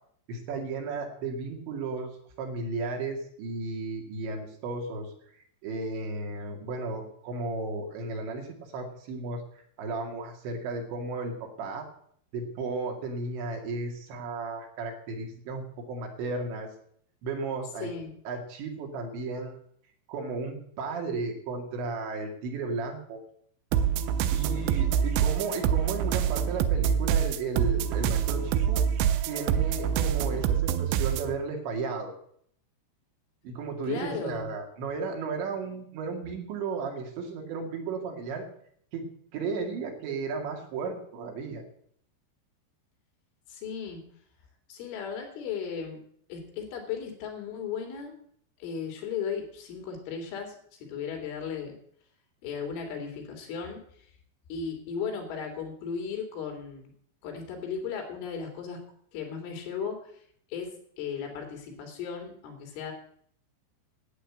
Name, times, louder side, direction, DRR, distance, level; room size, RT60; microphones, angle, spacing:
voice 1, 0.3-5.1 5.6-9.4 9.8-11.9 12.3-16.7 17.2-17.9 18.3-19.6 20.1-23.2 24.3-28.8 29.3-32.1 33.4-38.5 38.9-39.1 39.3-41.6, right 3 dB, 70° right, 2 dB, 4.3 m, -34 dB
voice 2, 17.8-18.1 24.4-25.0 33.8-34.5 43.5-44.1 44.7-46.0 46.3-48.1 48.6-51.8 52.4-53.8 54.5-56.9 57.2-58.8 59.1-60.2 60.5-62.9, left 6 dB, 85° left, 3 dB, 5.3 m, -36 dB
sound 1, 23.7-31.3, right 9 dB, 90° right, 3.1 m, -26 dB
11.5 x 9.1 x 8.2 m, 0.64 s
omnidirectional pair, 5.4 m